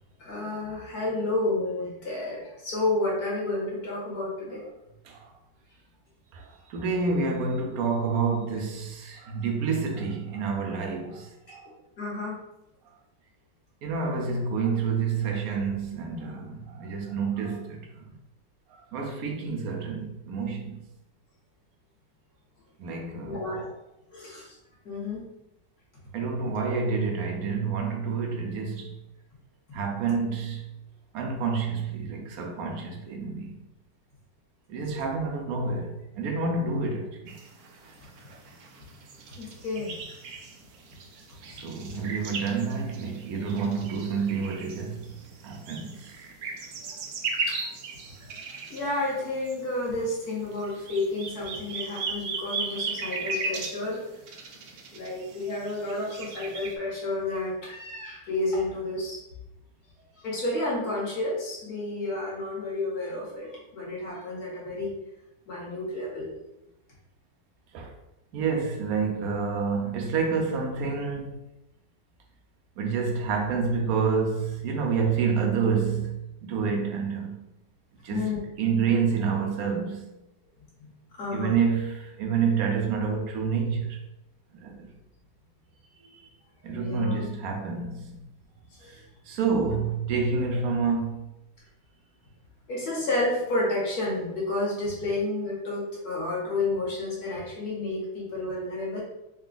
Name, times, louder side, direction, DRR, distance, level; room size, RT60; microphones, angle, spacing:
voice 1, 0.2-4.6 12.0-12.4 23.3-23.7 24.1-24.6 24.9-25.2 39.4-40.0 47.5-47.7 48.7-54.0 54.9-59.2 60.2-64.9 65.5-66.3 78.1-78.4 80.8-80.9 81.2-81.6 86.7-87.2 88.8-88.9 90.5-90.6 92.7-99.0, left 2 dB, 60° left, 1.8 m, -30 dB
voice 2, 6.3-11.7 13.8-18.0 18.7-20.8 22.8-23.5 26.1-29.0 29.7-30.7 31.1-33.6 34.7-37.4 41.5-45.1 45.4-46.1 67.7-67.9 68.3-71.4 72.8-77.4 78.0-80.0 81.3-84.0 84.6-84.9 86.1-86.2 86.6-88.2 89.3-91.3, right 5 dB, 65° right, 0.9 m, -28 dB
sound 1, 37.3-56.8, right 4 dB, 90° right, 0.6 m, -37 dB
3.9 x 2.4 x 3.8 m
omnidirectional pair, 2.0 m